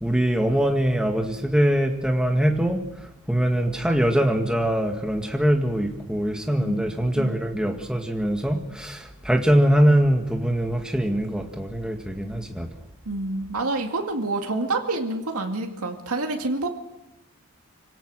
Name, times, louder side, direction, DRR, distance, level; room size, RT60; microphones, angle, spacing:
voice 1, 0.0-2.8 3.3-12.7, equal, 5° right, 3 dB, 1.9 m, -22 dB
voice 2, 13.1-16.7, right 2 dB, 85° right, 3 dB, 2.2 m, -27 dB
26.0 x 17.5 x 6.4 m, 0.92 s
head